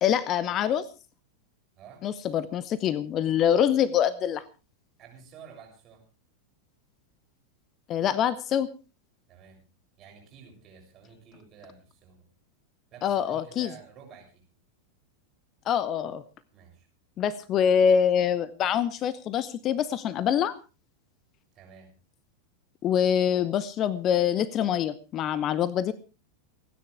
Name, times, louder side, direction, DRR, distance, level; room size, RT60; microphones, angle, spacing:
voice 1, 0.0-0.9 2.0-4.4 7.9-8.7 13.0-13.7 15.7-16.2 17.2-20.6 22.8-25.9, left 8 dB, 30° left, 19 dB, 0.7 m, -25 dB
voice 2, 1.7-2.1 5.0-6.0 9.3-9.6 10.0-12.3 12.9-14.5 16.5-16.9 21.5-21.9, right 6 dB, 30° right, 2 dB, 6.7 m, -50 dB
28.5 x 9.9 x 3.4 m, 0.32 s
figure-of-eight pair, 90°, 0 cm